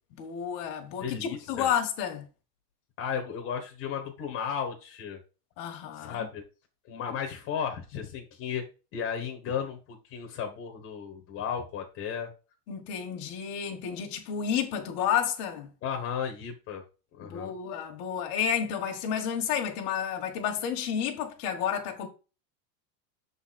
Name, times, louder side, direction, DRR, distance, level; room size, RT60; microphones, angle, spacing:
voice 1, 0.1-2.3 5.6-6.3 12.7-15.7 17.2-22.1, left 8 dB, 65° left, 1.6 m, -31 dB
voice 2, 1.0-1.7 3.0-5.2 5.9-6.4 6.9-8.6 8.9-12.3 15.8-16.8 17.2-17.5, left 7 dB, 30° left, 1.1 m, -34 dB
7.0 x 4.1 x 4.1 m
supercardioid pair, 175°, 47 cm